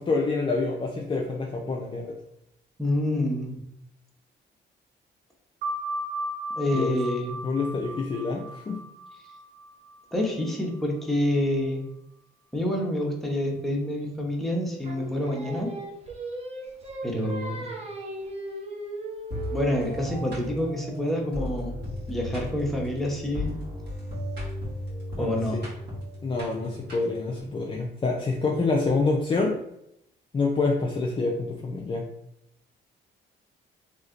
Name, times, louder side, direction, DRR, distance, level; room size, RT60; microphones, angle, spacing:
voice 1, 0.0-2.2 6.7-7.0 7.4-8.8 25.2-25.7 26.2-29.6 30.3-32.0, left 3 dB, 25° left, -1 dB, 0.4 m, -27 dB
voice 2, 2.8-3.6 6.6-7.4 10.1-11.9 12.5-15.7 17.0-17.7 19.5-21.7 22.1-23.5 25.2-25.6, left 1 dB, ahead, -1 dB, 0.8 m, -27 dB
sound 1, 5.6-10.8, right 1 dB, 75° right, 0.4 m, -36 dB
Singing, 14.8-20.0, right 2 dB, 30° right, 0.6 m, -36 dB
sound 2, 19.3-27.4, left 1 dB, 55° right, 1.5 m, -35 dB
3.1 x 2.8 x 2.5 m, 0.79 s
cardioid pair, 90°, 20 cm